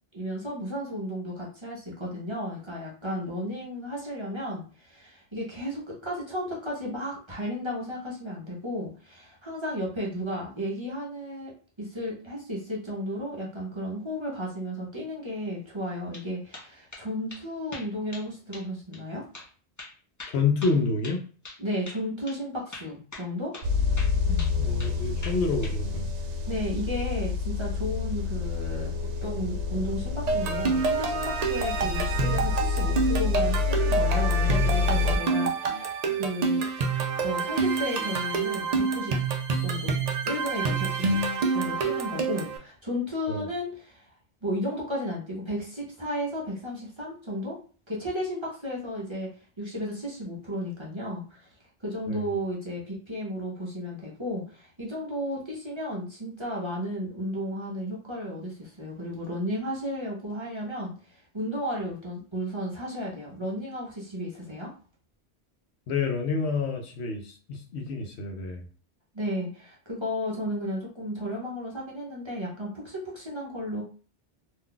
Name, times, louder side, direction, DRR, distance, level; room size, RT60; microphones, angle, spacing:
voice 1, 0.1-19.2 21.6-23.5 24.3-24.5 26.5-28.9 29.2-36.7 37.2-39.2 39.6-40.0 40.3-41.2 41.5-44.1 44.4-47.6 47.9-49.3 49.6-51.5 51.8-64.7 69.1-73.8, equal, 30° right, -4 dB, 0.7 m, -33 dB
sound 1, 15.9-16.3 16.5-17.0 17.3-17.4 17.7-18.3 18.5-18.7 18.9-19.0 19.3-19.5 19.8-21.6 21.9-22.0 22.3-22.4 22.7-23.3 23.5-23.7 24.0-25.0 25.2-25.8, left 2 dB, 20° left, 0.6 m, -42 dB
voice 2, 20.3-21.2 24.6-26.1 43.3-43.5 52.1-52.3 65.9-68.6, left 4 dB, 75° left, 4 dB, 0.9 m, -28 dB
sound 2, 23.6-35.2, left 5 dB, 90° right, 0.9 m, -28 dB
sound 3, 30.3-42.6, right 4 dB, 55° right, 0.4 m, -27 dB
2.6 x 2.3 x 3.7 m, 0.38 s
omnidirectional pair, 1.1 m